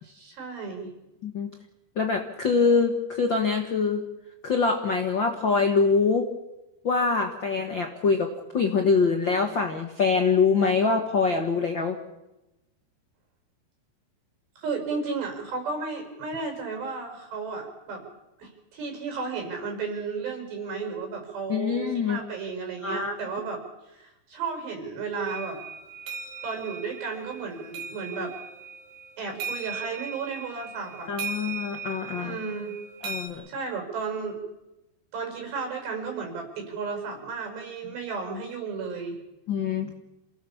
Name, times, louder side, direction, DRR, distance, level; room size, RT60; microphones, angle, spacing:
voice 1, 0.0-0.9 14.6-18.1 18.4-23.6 23.9-25.6 26.4-28.4 29.2-31.1 32.2-32.8 33.5-34.4 35.1-39.2, right 4 dB, 75° right, 4 dB, 7.4 m, -33 dB
voice 2, 1.9-4.0 4.4-6.3 6.8-12.0 21.5-22.2 22.8-23.1 31.1-32.4 33.0-33.5 39.5-39.9, left 4 dB, 70° left, 4 dB, 1.1 m, -24 dB
sound 1, 25.3-33.3, right 5 dB, 60° right, 3.9 m, -38 dB
28.0 x 17.5 x 7.2 m, 0.96 s
omnidirectional pair, 4.9 m